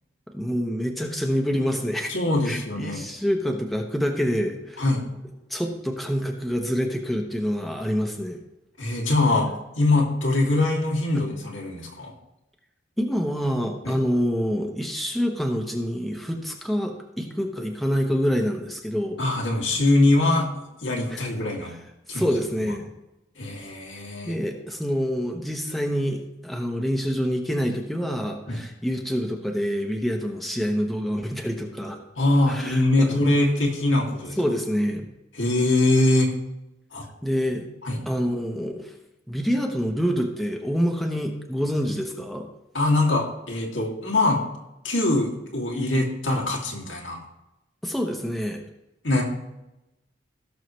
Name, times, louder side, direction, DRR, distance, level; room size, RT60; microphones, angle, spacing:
voice 1, 0.3-2.1 2.4-4.8 5.5-8.4 13.0-19.2 21.1-21.3 21.7-21.8 22.1-22.9 24.2-32.0 32.5-33.2 34.4-35.1 37.2-37.6 38.1-38.9 39.3-42.5 47.8-48.6, equal, ahead, 2 dB, 0.9 m, -26 dB
voice 2, 2.1-3.0 4.8-5.1 8.8-9.5 9.8-12.1 13.8-14.0 19.2-20.5 20.8-21.8 22.1-22.3 23.4-24.4 28.5-28.6 32.2-34.4 35.3-36.3 36.9-37.1 37.8-38.0 42.7-44.4 44.8-47.2 49.0-49.2, left 2 dB, 90° left, -1 dB, 2.4 m, -22 dB
17.0 x 6.5 x 3.2 m, 0.94 s
head